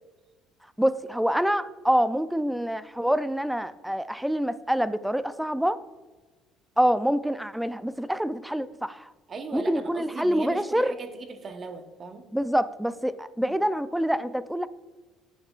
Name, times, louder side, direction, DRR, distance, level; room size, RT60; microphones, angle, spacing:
voice 1, 0.8-5.8 6.8-9.1 9.5-10.9 12.3-14.7, equal, 5° right, 14 dB, 0.4 m, -26 dB
voice 2, 9.3-12.2 13.4-13.5, right 4 dB, 40° right, 7 dB, 1.1 m, -39 dB
10.5 x 8.7 x 2.4 m, 1.3 s
supercardioid pair, 100°, 0 cm